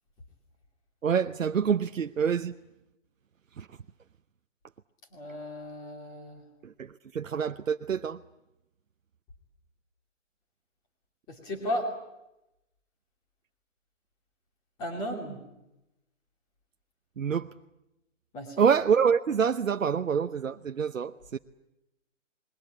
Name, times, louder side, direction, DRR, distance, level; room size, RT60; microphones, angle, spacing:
voice 1, 1.0-2.6 3.6-3.8 6.6-8.2 17.2-17.5 18.6-21.4, right 7 dB, 85° right, 0.9 m, -26 dB
voice 2, 5.1-6.4 11.3-11.9 14.8-15.4 18.3-18.6, equal, 10° left, 2.7 m, -34 dB
28.5 x 21.5 x 8.6 m
hypercardioid pair, 170°, 38 cm